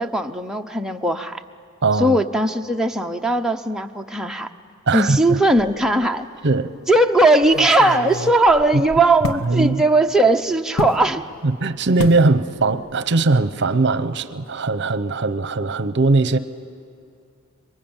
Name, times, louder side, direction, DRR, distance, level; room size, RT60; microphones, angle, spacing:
voice 1, 0.0-1.4 2.0-4.5 4.9-6.3 6.9-11.2, right 2 dB, 5° right, 0.8 m, -18 dB
voice 2, 1.8-2.2 4.9-5.4 6.4-6.7 9.4-9.8 11.4-16.4, right 3 dB, 55° right, 0.8 m, -19 dB
sound 1, 5.6-6.1 6.5-6.6 7.4-9.5 10.8-11.0 12.0-12.3 12.6-12.9 13.2-13.3, left 3 dB, 65° left, 1.3 m, -29 dB
26.5 x 23.0 x 8.9 m
head